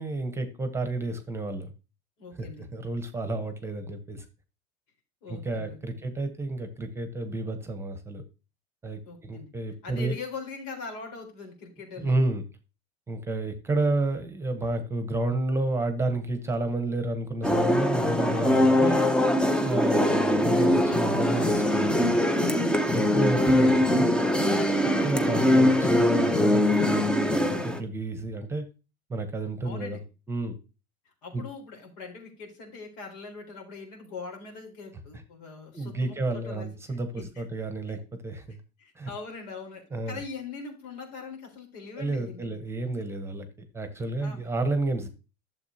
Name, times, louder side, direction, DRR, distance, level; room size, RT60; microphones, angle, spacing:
voice 1, 0.0-1.7 2.4-2.5 2.7-4.2 5.3-8.2 8.8-10.2 12.0-12.4 13.1-19.0 19.6-22.2 22.9-24.1 25.0-28.6 29.1-30.0 30.3-30.6 31.3-31.4 35.7-38.6 38.9-39.1 39.9-40.2 42.0-43.5 43.7-45.1, right 2 dB, 10° right, 9 dB, 1.0 m, -30 dB
voice 2, 2.2-2.7 5.2-6.0 9.0-9.5 9.8-12.3 29.6-30.0 31.2-37.2 37.9-38.0 38.8-42.6 44.2-44.4, left 4 dB, 80° left, 1 dB, 4.0 m, -42 dB
sound 1, 17.4-27.8, left 1 dB, 5° left, 0.6 m, -22 dB
11.5 x 7.1 x 2.8 m, 0.31 s
cardioid pair, 150°, 21 cm